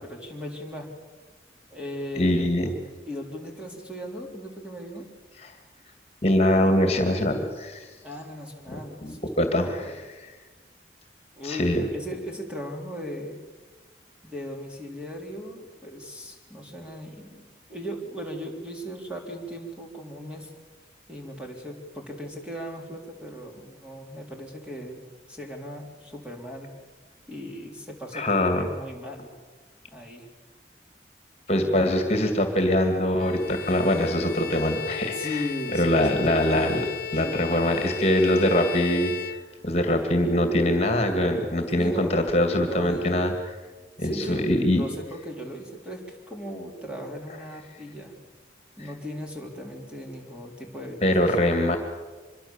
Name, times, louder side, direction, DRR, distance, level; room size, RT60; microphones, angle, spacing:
voice 1, 0.0-0.9 1.7-2.5 3.1-5.1 8.0-9.4 9.8-10.0 11.4-13.4 14.2-20.5 21.1-25.0 25.3-26.7 27.3-29.3 29.9-30.3 31.6-31.9 35.1-36.8 37.2-37.6 41.8-42.3 42.6-43.3 44.0-48.1 48.8-51.4, equal, 5° right, 0 dB, 3.7 m, -37 dB
voice 2, 2.1-2.7 5.4-5.5 6.2-7.9 8.7-10.3 11.4-11.9 28.1-28.7 31.5-35.2 35.7-36.9 37.1-43.3 44.0-44.8 51.0-51.8, left 1 dB, 35° left, 6 dB, 2.3 m, -23 dB
Bowed string instrument, 33.2-40.0, left 7 dB, 55° left, 0.9 m, -35 dB
25.0 x 23.0 x 7.2 m, 1.3 s
head